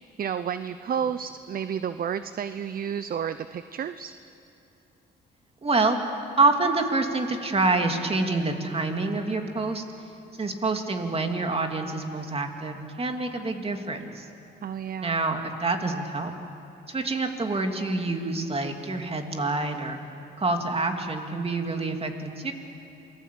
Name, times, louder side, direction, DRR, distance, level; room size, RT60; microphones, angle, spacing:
voice 1, 0.2-4.1 14.6-15.2, right 8 dB, 45° right, 12 dB, 0.7 m, -31 dB
voice 2, 5.6-6.0 6.4-9.8 10.4-14.3 15.0-16.3 16.9-20.0 20.4-22.5, right 3 dB, 30° right, 4 dB, 2.7 m, -27 dB
27.5 x 20.0 x 8.4 m, 2.8 s
cardioid pair, 90°, 20 cm